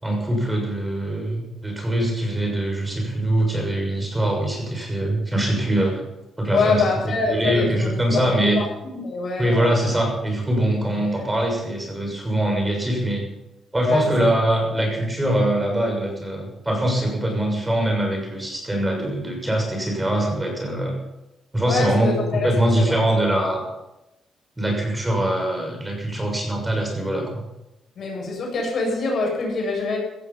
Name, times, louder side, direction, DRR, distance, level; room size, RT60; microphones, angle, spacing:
voice 1, 0.0-6.0 6.4-8.6 9.4-13.2 13.7-20.9 21.5-22.1 22.4-23.6 24.6-27.4, right 1 dB, 15° right, 1 dB, 6.5 m, -23 dB
voice 2, 6.5-8.6 8.9-9.7 10.8-11.1 13.8-14.3 21.7-22.5 22.8-23.0 28.0-30.0, left 3 dB, 55° left, 0 dB, 7.7 m, -25 dB
16.5 x 14.5 x 5.8 m, 0.93 s
cardioid pair, 90°, 0 cm